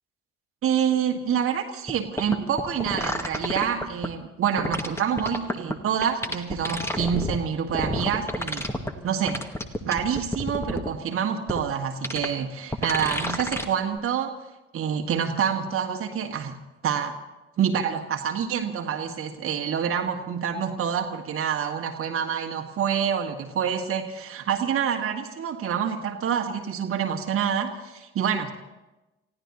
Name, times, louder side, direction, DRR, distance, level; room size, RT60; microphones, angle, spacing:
voice 1, 0.6-8.7 9.0-9.4 9.8-14.4 14.7-16.6 16.8-17.2 17.6-28.5, right 8 dB, 45° right, 3 dB, 1.6 m, -27 dB
sound 1, 1.9-2.0 2.2-4.1 4.6-5.7 6.0-7.4 7.7-8.9 9.3-10.9 11.5-11.6 12.0-12.3 12.7-13.7 14.0-14.1, left 1 dB, 10° left, 1.7 m, -29 dB
30.0 x 16.5 x 2.9 m, 1.0 s
figure-of-eight pair, 45°, 30 cm